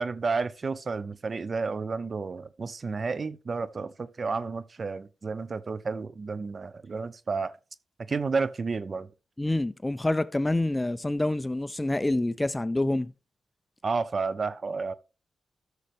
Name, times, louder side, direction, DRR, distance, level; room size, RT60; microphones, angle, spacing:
voice 1, 0.0-7.5 8.1-9.1 13.8-14.9, right 4 dB, 45° right, 0.6 m, -31 dB
voice 2, 9.4-13.1, left 1 dB, 15° left, 0.4 m, -27 dB
13.0 x 6.4 x 3.2 m
cardioid pair, 85°, 0 cm